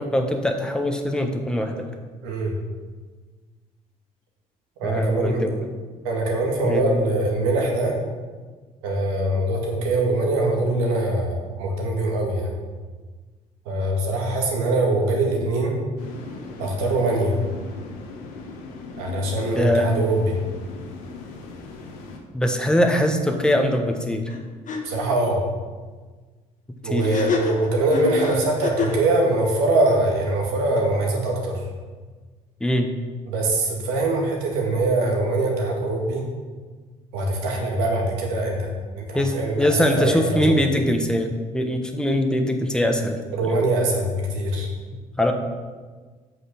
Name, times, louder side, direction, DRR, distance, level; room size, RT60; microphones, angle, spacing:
voice 1, 0.0-1.8 4.8-5.6 6.6-6.8 19.5-19.9 22.3-24.3 26.9-27.2 32.6-32.9 39.1-43.6 45.2-45.3, left 1 dB, 5° left, 4 dB, 1.2 m, -22 dB
voice 2, 2.2-2.5 4.8-5.4 6.0-7.9 8.8-12.5 13.7-15.8 16.6-17.3 19.0-20.4 24.8-25.4 26.8-31.6 33.3-36.3 37.1-40.6 43.3-44.7, right 2 dB, 70° right, 0 dB, 2.0 m, -23 dB
sound 1, 16.0-22.2, left 4 dB, 70° left, 1.4 m, -39 dB
sound 2, 24.3-24.4 24.7-24.8 27.0-29.1, left 4 dB, 40° left, 1.7 m, -27 dB
8.4 x 5.8 x 5.9 m, 1.4 s
figure-of-eight pair, 55°, 19 cm